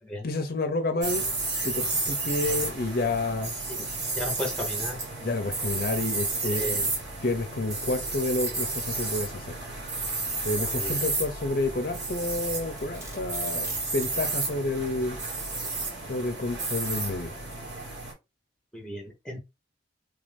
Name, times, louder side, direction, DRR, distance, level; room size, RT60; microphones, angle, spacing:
voice 1, 0.2-1.2 1.6-3.5 5.2-6.9 7.2-9.5 10.4-15.2 16.1-17.3, left 2 dB, 55° left, 0.6 m, -29 dB
sound 1, 1.0-18.1, right 3 dB, 70° right, 1.6 m, -32 dB
voice 2, 4.1-5.0 6.4-6.9 10.6-11.0 18.7-19.4, left 1 dB, 5° left, 0.8 m, -36 dB
Domestic sounds home sounds, 12.3-14.2, equal, 15° right, 1.2 m, -45 dB
3.4 x 2.6 x 3.4 m
head